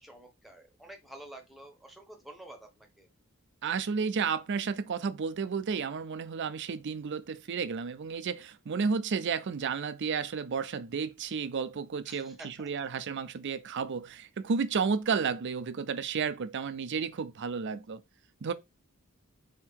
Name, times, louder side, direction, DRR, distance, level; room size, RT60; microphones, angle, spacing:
voice 1, 0.0-3.1 12.1-12.9, right 1 dB, ahead, 1.0 m, -49 dB
voice 2, 3.6-18.0 18.4-18.5, right 5 dB, 55° right, 0.5 m, -32 dB
3.6 x 2.8 x 4.5 m
head